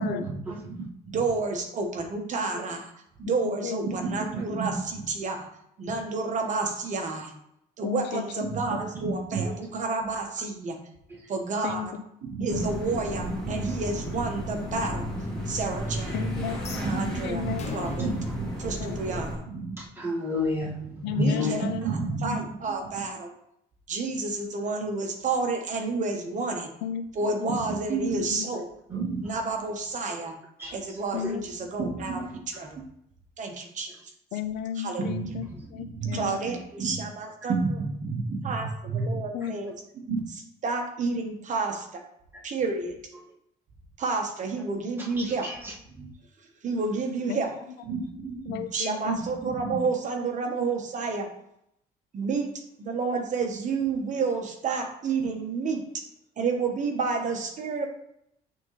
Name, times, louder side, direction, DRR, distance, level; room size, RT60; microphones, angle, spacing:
voice 1, 0.0-2.9 3.2-5.5 5.8-7.3 7.8-10.8 11.3-11.9 12.3-15.1 15.5-16.2 16.7-19.7 20.8-23.3 23.9-26.7 27.2-30.3 30.7-32.8 33.4-33.9 34.8-42.0 42.4-42.9 44.0-45.5 46.0-46.1 46.6-47.5 47.8-51.3 52.1-52.5 52.8-56.0 56.4-57.8, right 4 dB, 50° right, 3 dB, 1.3 m, -30 dB
voice 2, 3.4-4.2 7.8-8.8 11.6-12.4 12.7-12.8 16.1-16.8 17.2-17.8 18.8-19.1 21.0-21.9 26.8-27.1 27.3-27.5 28.2-28.5 31.1-31.5 34.3-36.4 39.3-39.6 47.3-47.4 48.5-49.2, left 10 dB, 85° left, 10 dB, 0.6 m, -34 dB
sound 1, 12.5-19.4, equal, 5° left, 2.5 m, -33 dB
sound 2, 16.5-19.6, left 5 dB, 40° left, 0.9 m, -41 dB
voice 3, 19.8-20.8 21.2-21.5 28.9-29.0 30.1-30.2 30.6-30.7 45.2-45.7, left 2 dB, 15° right, -6 dB, 2.0 m, -32 dB
8.2 x 3.8 x 3.3 m, 0.75 s
cardioid pair, 110°, 17 cm